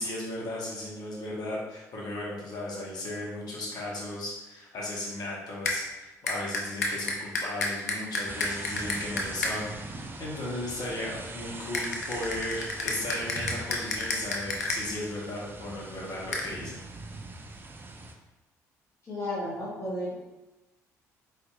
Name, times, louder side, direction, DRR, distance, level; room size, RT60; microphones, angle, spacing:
voice 1, 0.0-16.8, left 1 dB, 50° left, -4 dB, 1.3 m, -36 dB
sound 1, 5.7-5.8 6.3-9.5 11.7-14.8 16.3-16.5, left 3 dB, 85° left, 0.4 m, -30 dB
sound 2, 8.3-18.1, right 2 dB, 25° right, 0.5 m, -42 dB
voice 2, 19.1-20.1, left 1 dB, 35° left, -6 dB, 1.4 m, -33 dB
4.4 x 3.6 x 2.6 m, 1.0 s
figure-of-eight pair, 50°, 8 cm